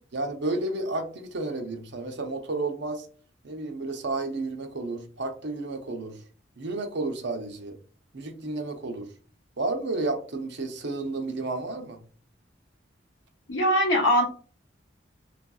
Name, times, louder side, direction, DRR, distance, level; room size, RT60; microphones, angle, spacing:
voice 1, 0.1-3.1 3.4-6.2 6.6-7.8 8.1-9.1 9.6-12.0, right 2 dB, 65° right, 5 dB, 0.6 m, -31 dB
voice 2, 13.5-14.2, equal, 75° left, 0 dB, 1.0 m, -21 dB
3.4 x 2.5 x 2.3 m, 0.41 s
head